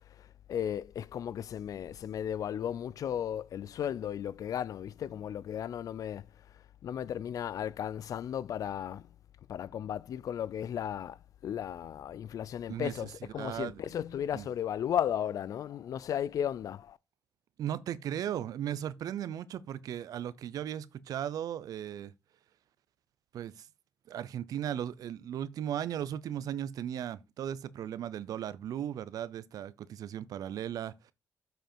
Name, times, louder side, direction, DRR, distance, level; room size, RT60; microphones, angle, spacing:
voice 1, 0.2-6.2 6.8-9.1 9.5-17.0, left 9 dB, 70° left, 0.4 m, -35 dB
voice 2, 12.7-13.8 14.3-14.5 17.6-22.1 23.3-23.7 24.1-31.1, right 10 dB, 80° right, 0.6 m, -37 dB
7.7 x 5.1 x 4.4 m
cardioid pair, 85°, 6 cm